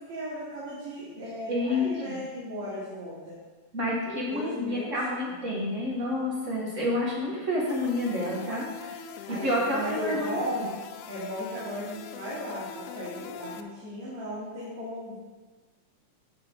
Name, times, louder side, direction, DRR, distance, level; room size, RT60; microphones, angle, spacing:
voice 1, 0.0-3.4 4.1-4.9 8.7-10.7 11.1-15.2, equal, 65° right, -9 dB, 3.4 m, -36 dB
voice 2, 1.2-2.1 3.7-8.6 9.3-10.6, left 1 dB, 35° right, -4 dB, 1.3 m, -29 dB
sound 1, 7.7-13.6, left 7 dB, 85° left, 2.0 m, -43 dB
14.0 x 5.3 x 3.8 m, 1.3 s
omnidirectional pair, 3.4 m